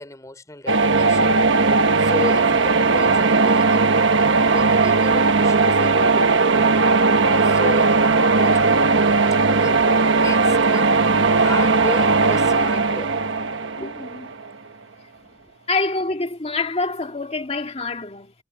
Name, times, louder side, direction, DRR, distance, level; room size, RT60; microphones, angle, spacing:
voice 1, 0.0-1.4 2.0-6.6 7.4-8.7 9.5-11.0 11.3-13.2 13.6-13.9, left 1 dB, 15° left, 4.3 m, -34 dB
sound 1, 0.7-14.5, right 3 dB, 70° right, 1.2 m, -18 dB
voice 2, 13.8-14.3 15.7-18.3, left 3 dB, 30° left, 1.9 m, -26 dB
head